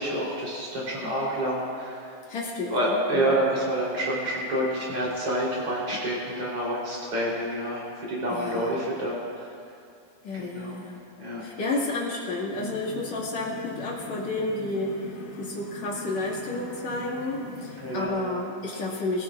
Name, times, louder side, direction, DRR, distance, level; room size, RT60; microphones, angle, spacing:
voice 1, 0.0-2.1 2.7-7.8 8.1-9.2 10.4-10.7 11.2-11.4 17.8-18.2, right 1 dB, 30° right, -5 dB, 4.3 m, -28 dB
voice 2, 2.3-3.4 8.3-8.9 10.2-11.0 11.4-15.1 15.4-19.2, left 2 dB, 45° left, -5 dB, 2.7 m, -31 dB
sound 1, 12.5-18.1, left 5 dB, 80° left, 4.0 m, -41 dB
23.5 x 15.0 x 2.5 m, 2.6 s
omnidirectional pair, 5.6 m